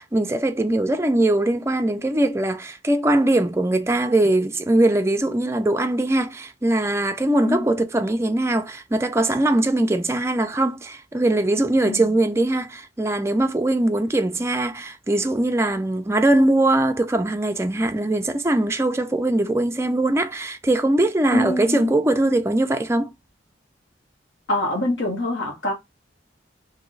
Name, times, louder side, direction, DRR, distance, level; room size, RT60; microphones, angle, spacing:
voice 1, 0.0-23.1, right 1 dB, 15° right, 0.3 m, -21 dB
voice 2, 21.3-21.9 24.5-25.7, left 1 dB, 80° left, 1.5 m, -24 dB
3.0 x 2.7 x 3.8 m
head